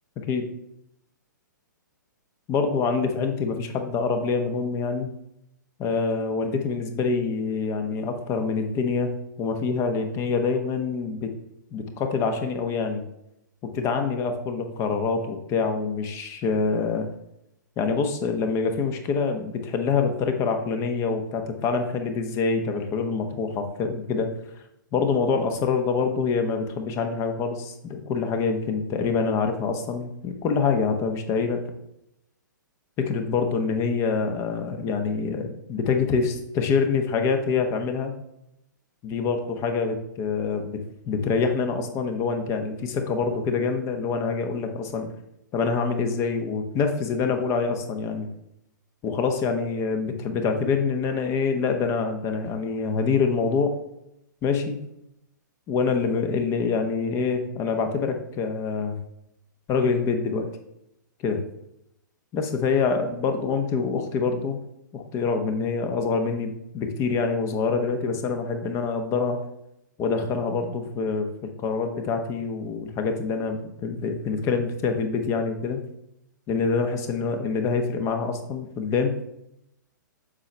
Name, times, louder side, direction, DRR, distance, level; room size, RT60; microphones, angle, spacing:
voice 1, 2.5-5.1 5.8-9.1 9.4-11.3 11.7-13.0 13.6-17.1 17.8-24.3 24.9-31.6 33.0-38.1 39.0-40.8 41.1-45.1 45.5-48.3 49.0-53.7 54.4-54.8 55.7-59.0 59.7-60.5 61.2-61.4 62.3-64.6 64.9-69.4 70.0-75.8 76.5-79.2, left 5 dB, 25° left, 6 dB, 1.0 m, -25 dB
7.4 x 5.8 x 3.3 m, 0.81 s
figure-of-eight pair, 120°, 11 cm